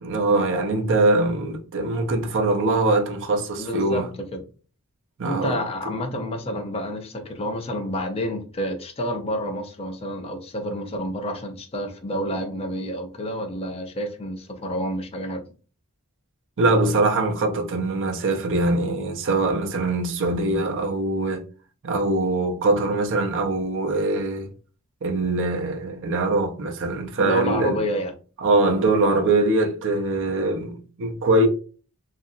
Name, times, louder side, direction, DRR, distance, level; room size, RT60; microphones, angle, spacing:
voice 1, 0.0-4.1 5.2-5.6 16.6-21.4 21.8-24.5 25.0-27.8 28.4-31.5, right 2 dB, 60° right, 0.5 m, -22 dB
voice 2, 3.6-4.4 5.2-15.4 27.2-28.1, equal, 25° left, 0.5 m, -29 dB
2.8 x 2.5 x 2.5 m
head